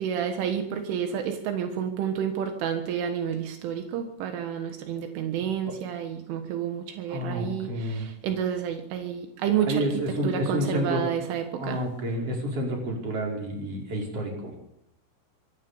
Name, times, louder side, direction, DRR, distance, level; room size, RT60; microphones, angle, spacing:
voice 1, 0.0-9.8 10.2-11.8, right 8 dB, 80° right, 6 dB, 3.9 m, -30 dB
voice 2, 7.1-8.0 9.7-11.0 11.6-14.6, equal, 30° right, 0 dB, 6.0 m, -29 dB
24.0 x 16.0 x 7.1 m, 0.75 s
omnidirectional pair, 5.6 m